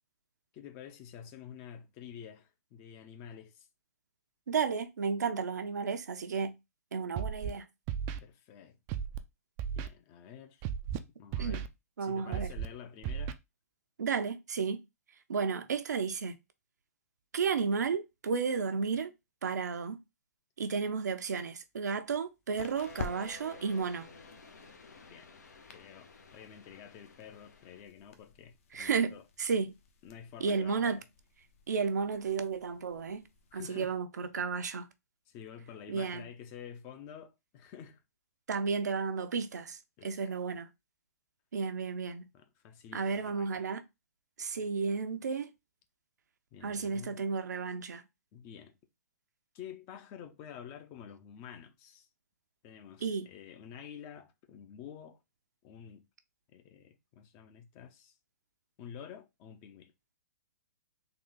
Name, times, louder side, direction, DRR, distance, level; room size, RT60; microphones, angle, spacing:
voice 1, 0.5-3.7 8.2-8.8 9.8-10.6 11.2-11.7 12.0-13.4 25.1-25.3 25.7-29.2 30.0-31.0 33.5-33.9 34.2-34.3 35.3-38.0 40.0-40.4 42.3-43.7 46.5-47.2 48.3-48.8 49.5-52.1 52.6-55.2 55.6-56.1 56.5-58.1 58.8-59.9, left 8 dB, 30° left, 0.6 m, -49 dB
voice 2, 4.5-6.5 6.9-7.7 11.4-11.6 12.0-12.5 14.0-14.8 15.3-16.4 17.3-19.1 19.4-20.0 20.6-24.1 28.7-29.7 30.4-31.0 31.7-33.3 33.5-34.9 35.9-36.3 38.5-40.7 41.5-42.2 42.9-43.8 44.4-45.5 46.6-48.0 53.0-53.3, right 5 dB, 80° right, 0.7 m, -33 dB
Scratching (performance technique), 7.2-7.5 7.9-8.2 8.9-9.2 9.6-9.9 10.6-11.0 11.3-11.7 12.3-12.7 13.0-13.3, right 8 dB, 25° right, 0.4 m, -34 dB
sound 1, 21.2-33.6, left 5 dB, 55° left, 0.9 m, -51 dB
sound 2, 22.7-27.8, left 3 dB, 85° left, 1.1 m, -53 dB
3.8 x 2.5 x 3.8 m
hypercardioid pair, 140°, 9 cm